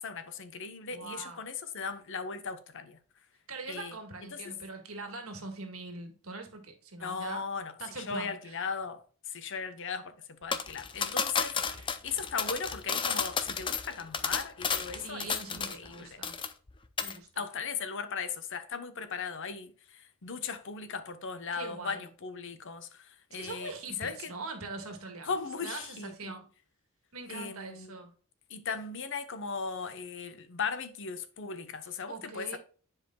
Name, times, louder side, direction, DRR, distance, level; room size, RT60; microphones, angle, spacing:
voice 1, 0.0-3.0 3.7-3.9 4.3-4.4 7.0-16.2 17.4-23.7 24.0-24.3 25.3-26.3 27.3-28.0 28.5-32.6, left 5 dB, 60° left, 0.8 m, -38 dB
voice 2, 0.9-1.4 3.5-7.5 7.8-8.7 11.4-11.9 14.9-16.4 17.0-17.5 21.5-22.1 23.3-26.5 27.1-28.1 32.1-32.6, right 3 dB, 70° right, 1.8 m, -43 dB
sound 1, 10.5-15.9 16.2-16.7 17.0-17.2, left 6 dB, 20° left, 0.5 m, -32 dB
10.5 x 5.0 x 2.3 m
head